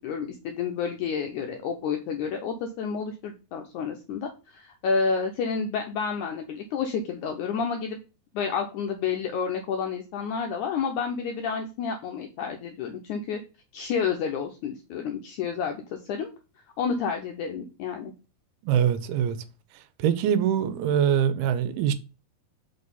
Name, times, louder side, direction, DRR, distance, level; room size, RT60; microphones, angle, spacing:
voice 1, 0.0-8.0 8.3-13.4 13.7-15.8 16.1-16.3 16.8-18.1, left 6 dB, 80° left, 1.7 m, -30 dB
voice 2, 18.6-19.4 20.0-21.9, right 9 dB, 90° right, 2.6 m, -23 dB
5.6 x 4.0 x 5.4 m
omnidirectional pair, 4.3 m